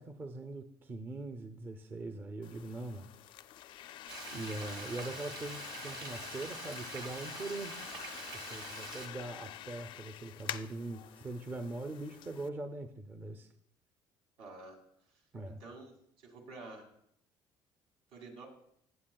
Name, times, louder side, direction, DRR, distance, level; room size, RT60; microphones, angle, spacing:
voice 1, 0.0-3.1 4.3-7.7 8.3-13.5 15.3-15.6, right 2 dB, 20° right, 8 dB, 0.5 m, -42 dB
sound 1, 2.4-12.5, left 12 dB, 60° left, 0.4 m, -47 dB
Frying (food), 4.1-9.1, right 5 dB, 50° right, 1.7 m, -46 dB
voice 2, 14.4-14.8 15.4-15.9 16.2-16.9 18.1-18.5, right 3 dB, 75° right, 2 dB, 2.2 m, -49 dB
15.0 x 8.7 x 2.3 m, 0.72 s
cardioid pair, 155°, 10 cm